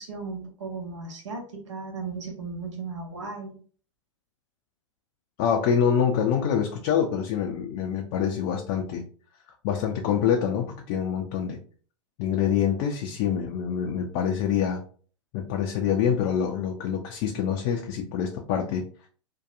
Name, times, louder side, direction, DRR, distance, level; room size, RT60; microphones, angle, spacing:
voice 1, 0.0-3.6, right 4 dB, 70° right, 1 dB, 0.9 m, -36 dB
voice 2, 5.4-9.0 9.6-11.6 12.2-14.8 15.3-18.9, left 8 dB, 40° left, 2 dB, 0.4 m, -26 dB
2.7 x 2.2 x 2.5 m, 0.43 s
figure-of-eight pair, 100°, 16 cm